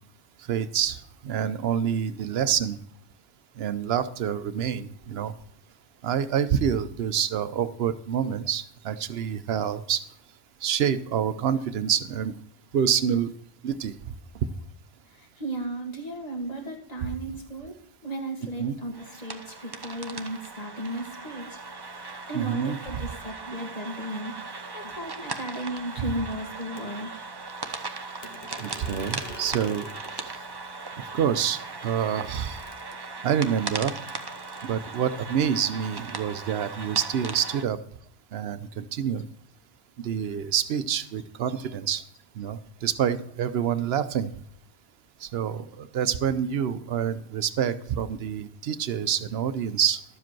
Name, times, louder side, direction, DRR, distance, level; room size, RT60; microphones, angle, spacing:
voice 1, 0.5-2.8 3.6-5.3 6.0-10.0 10.6-12.3 12.7-13.3 13.6-13.9 16.5-16.7 18.6-18.8 22.3-23.1 26.0-26.1 27.7-27.8 28.6-29.9 30.1-30.3 31.1-32.6 33.2-34.0 34.6-37.8 38.3-39.2 40.0-42.0 42.3-44.3 45.2-50.0, right 8 dB, 70° right, 13 dB, 0.9 m, -27 dB
voice 2, 15.2-21.5 21.9-24.3 24.7-27.2, right 1 dB, 40° left, 2 dB, 2.0 m, -35 dB
sound 1, 18.9-37.6, right 3 dB, 25° right, 0.7 m, -38 dB
sound 2, 26.8-26.9 28.2-30.3 31.2-31.3 31.5-33.2 34.1-34.7, left 2 dB, 65° left, 1.3 m, -45 dB
12.0 x 7.5 x 4.5 m, 0.65 s
omnidirectional pair, 1.1 m